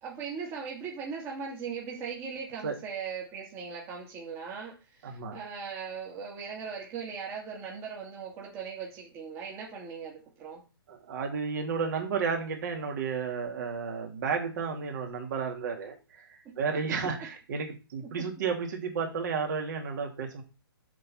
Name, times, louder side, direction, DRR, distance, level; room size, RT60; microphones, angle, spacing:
voice 1, 0.0-10.6 16.7-17.1 18.0-18.5, right 6 dB, 20° right, -2 dB, 2.0 m, -39 dB
voice 2, 5.0-5.4 10.9-16.3 16.6-20.4, right 5 dB, 50° right, 2 dB, 2.4 m, -32 dB
7.6 x 3.8 x 6.0 m, 0.32 s
hypercardioid pair, 150°, 13 cm